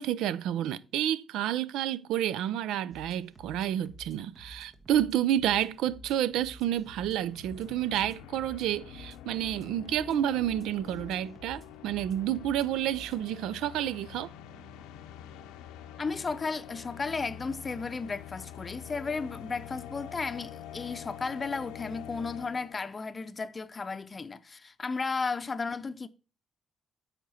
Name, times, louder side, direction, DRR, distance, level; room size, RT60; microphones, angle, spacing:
voice 1, 0.0-14.3, right 11 dB, 80° right, 0.4 m, -30 dB
sound 1, 2.9-13.3, equal, 45° right, 1.3 m, -52 dB
sound 2, 5.7-23.0, left 10 dB, 90° left, 0.6 m, -46 dB
voice 2, 16.0-26.1, left 4 dB, 35° left, 0.6 m, -34 dB
8.5 x 5.0 x 4.2 m
supercardioid pair, 60°, 0 cm